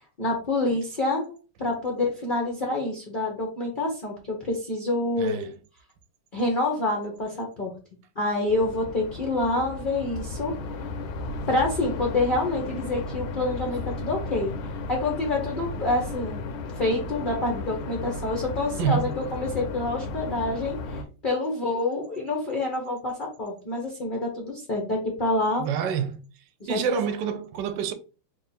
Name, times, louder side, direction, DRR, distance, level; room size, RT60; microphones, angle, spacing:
voice 1, 0.2-1.3 1.6-5.5 6.3-7.7 8.2-10.5 11.5-14.5 14.9-16.4 16.8-20.8 21.2-25.7 26.6-27.0, left 2 dB, 65° left, 0.4 m, -27 dB
voice 2, 5.2-5.5 18.8-19.1 25.6-26.2 26.7-27.9, right 8 dB, 70° right, 1.1 m, -27 dB
sound 1, 8.5-21.0, left 3 dB, 90° left, 1.4 m, -34 dB
3.5 x 2.4 x 4.1 m
omnidirectional pair, 2.2 m